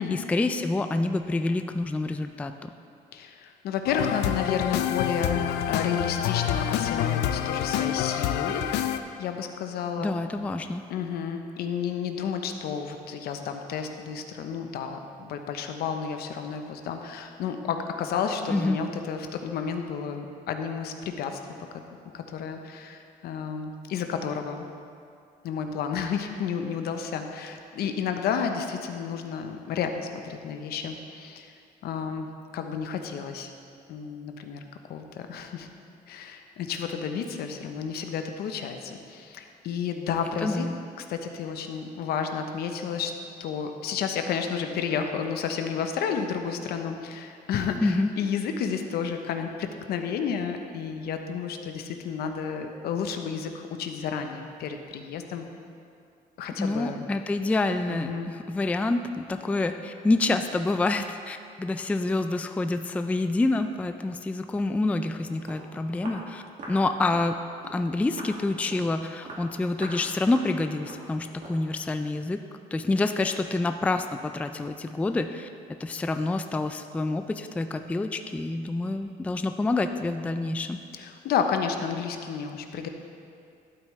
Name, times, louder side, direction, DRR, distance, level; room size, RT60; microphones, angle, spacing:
voice 1, 0.0-2.7 10.0-10.8 18.5-18.8 40.4-40.8 47.8-48.1 56.6-67.4 67.7-72.4 72.7-75.5 75.8-80.8, left 2 dB, 10° left, 8 dB, 0.3 m, -27 dB
voice 2, 3.1-8.7 9.2-10.2 10.9-21.4 21.7-21.8 22.1-24.7 25.4-31.5 31.8-33.5 33.9-35.7 36.1-40.7 41.0-43.1 43.4-55.5 56.4-57.0 57.9-58.3 80.9-82.9, left 7 dB, 70° left, 6 dB, 0.8 m, -31 dB
sound 1, 3.9-9.0, left 10 dB, 85° left, 0.5 m, -27 dB
Walk footsteps, 65.5-65.7 66.0-66.2 66.6-66.8 67.1-67.3 67.6-67.8 68.2-68.4 68.7-68.9 69.3-69.5 69.8-70.0 70.3-70.5 70.9-71.1 71.4-71.6, right 2 dB, 50° right, 2.0 m, -41 dB
12.0 x 8.6 x 3.2 m, 2.4 s
cardioid pair, 110°, 17 cm